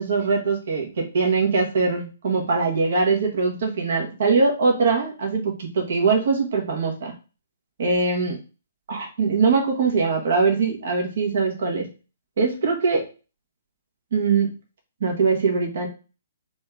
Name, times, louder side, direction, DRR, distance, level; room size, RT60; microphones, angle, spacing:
voice 1, 0.0-7.1 7.8-8.4 8.9-11.8 12.4-13.1 14.1-14.5 15.0-15.9, right 4 dB, 60° right, 1 dB, 1.6 m, -22 dB
4.0 x 3.4 x 3.8 m, 0.33 s
figure-of-eight pair, 125°, 0 cm